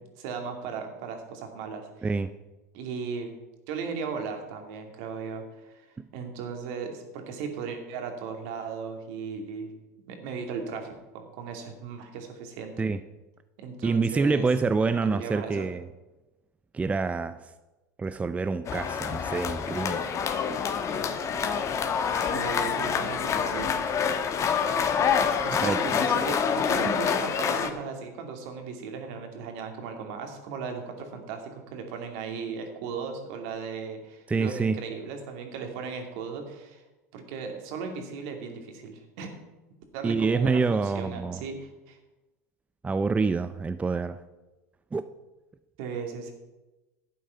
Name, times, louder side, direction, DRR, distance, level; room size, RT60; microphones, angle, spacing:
voice 1, 0.2-2.1 2.7-3.3 3.7-5.9 6.1-9.7 10.1-12.9 13.6-14.5 14.9-15.7 22.2-23.7 25.4-36.8 37.1-39.3 39.9-42.0 45.8-46.3, right 5 dB, 65° right, 4 dB, 2.4 m, -36 dB
voice 2, 13.8-15.9 16.7-17.5 18.0-20.0 25.6-25.8 34.3-34.8 40.0-41.4 42.8-44.2 44.9-45.0, right 4 dB, 15° right, 12 dB, 0.5 m, -26 dB
sound 1, 18.7-27.7, left 7 dB, 35° left, 1.3 m, -27 dB
11.5 x 8.7 x 5.7 m, 1.1 s
hypercardioid pair, 90°, 9 cm